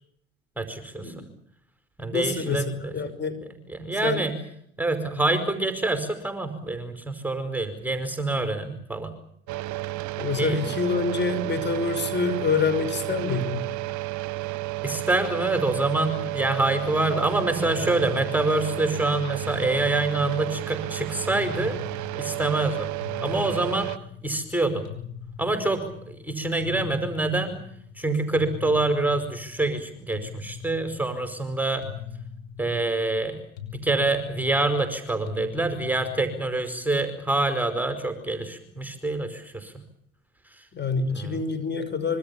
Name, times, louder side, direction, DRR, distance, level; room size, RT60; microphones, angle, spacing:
voice 1, 0.6-1.2 2.0-2.9 3.7-4.4 4.8-9.1 10.3-10.6 14.8-21.8 22.1-22.9 23.2-23.9 24.2-24.9 25.4-27.6 27.9-31.8 32.6-33.4 33.7-39.7 40.4-40.7 41.1-41.4, right 2 dB, 5° right, 8 dB, 5.0 m, -26 dB
voice 2, 2.1-2.6 2.9-3.4 4.0-4.3 10.2-13.7 40.7-42.2, left 4 dB, 25° left, 12 dB, 5.9 m, -26 dB
sound 1, 9.5-24.0, right 19 dB, 50° right, 1.0 m, -32 dB
sound 2, 17.6-36.9, left 8 dB, 70° left, 5.9 m, -42 dB
26.0 x 24.5 x 7.2 m, 0.69 s
hypercardioid pair, 70°, 39 cm